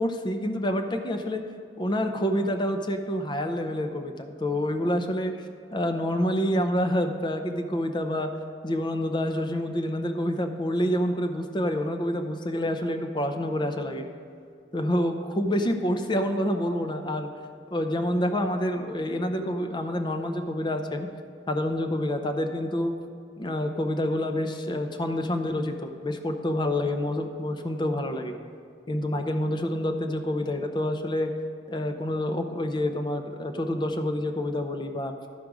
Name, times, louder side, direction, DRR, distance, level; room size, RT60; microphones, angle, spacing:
voice 1, 0.0-1.4 1.8-5.3 5.7-8.3 8.6-14.1 14.7-17.3 17.7-21.1 21.5-22.9 23.4-28.4 28.9-31.3 31.7-35.1, left 1 dB, 25° left, 6 dB, 0.6 m, -27 dB
12.0 x 5.1 x 4.7 m, 2.2 s
head